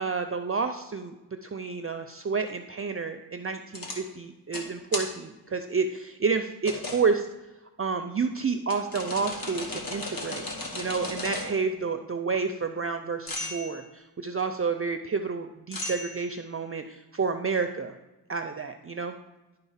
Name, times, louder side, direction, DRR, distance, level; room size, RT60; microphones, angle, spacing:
voice 1, 0.0-7.3 7.8-10.5 10.7-17.9 18.3-19.1, right 5 dB, 35° right, 7 dB, 0.5 m, -30 dB
sound 1, 3.7-4.0 4.5-4.7 4.9-5.1 6.7-7.1 8.7-11.6 13.3-13.7 15.7-16.4, left 2 dB, 60° left, 1.6 m, -35 dB
11.0 x 3.9 x 5.6 m, 1.1 s
wide cardioid pair, 80°, 40 cm